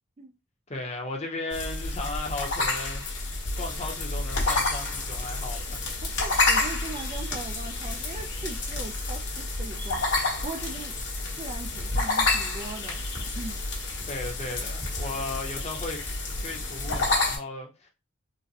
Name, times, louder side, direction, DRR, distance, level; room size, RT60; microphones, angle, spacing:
voice 1, 0.7-5.9 14.1-16.0 16.4-17.9, left 2 dB, 35° left, 0.7 m, -36 dB
sound 1, 1.5-17.4, left 2 dB, 65° left, 1.2 m, -29 dB
voice 2, 6.0-10.9 11.4-13.0 13.3-13.6, right 3 dB, 30° right, 0.3 m, -40 dB
3.9 x 2.1 x 2.7 m
head